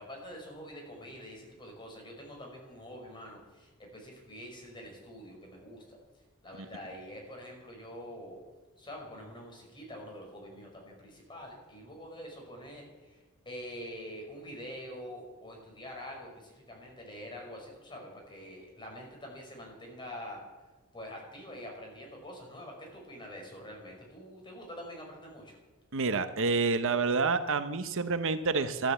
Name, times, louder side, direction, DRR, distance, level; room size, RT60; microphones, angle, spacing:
voice 1, 0.0-6.0 6.4-8.4 8.8-13.2 13.5-20.4 20.9-25.6, equal, 20° left, 0 dB, 5.3 m, -45 dB
voice 2, 25.9-28.9, right 4 dB, 60° right, 10 dB, 0.9 m, -28 dB
13.5 x 13.0 x 8.2 m, 1.2 s
head